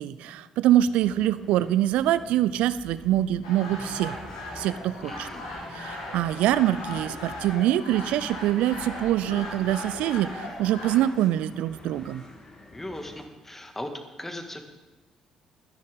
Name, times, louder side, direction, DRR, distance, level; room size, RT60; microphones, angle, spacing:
voice 1, 0.0-4.2 4.6-5.3 5.7-12.2, right 12 dB, 60° right, 15 dB, 0.5 m, -24 dB
sound 1, 1.0-13.3, left 1 dB, 35° left, 2.6 m, -48 dB
sound 2, 3.4-11.0, left 1 dB, 75° left, 4.0 m, -38 dB
voice 2, 5.0-5.4 12.7-13.9 14.2-14.6, left 1 dB, 15° left, 6 dB, 2.0 m, -38 dB
24.5 x 10.5 x 3.7 m, 1.2 s
figure-of-eight pair, 45°, 2 cm